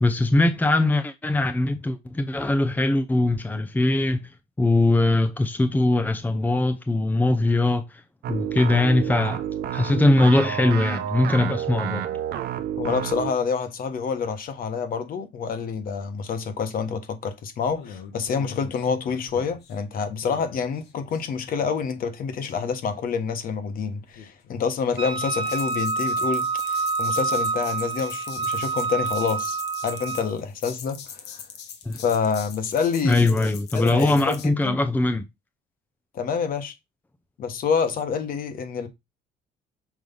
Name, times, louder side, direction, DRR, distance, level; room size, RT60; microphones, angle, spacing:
voice 1, 0.0-8.0 8.3-9.4 9.7-12.1 31.8-32.0 33.0-35.2, left 2 dB, 10° left, 0.7 m, -21 dB
sound 1, 8.2-13.3, right 10 dB, 70° right, 0.8 m, -30 dB
voice 2, 12.8-31.4 31.9-33.5 33.7-34.8 36.1-36.7 37.4-38.9, left 6 dB, 55° left, 1.4 m, -27 dB
sound 2, 17.6-19.8 20.2-23.1 24.1-24.6 25.2-34.5, left 7 dB, 80° left, 1.4 m, -42 dB
Wind instrument woodwind instrument, 25.0-30.3, right 4 dB, 30° right, 0.6 m, -27 dB
6.2 x 3.3 x 5.3 m
cardioid pair, 110°, 17 cm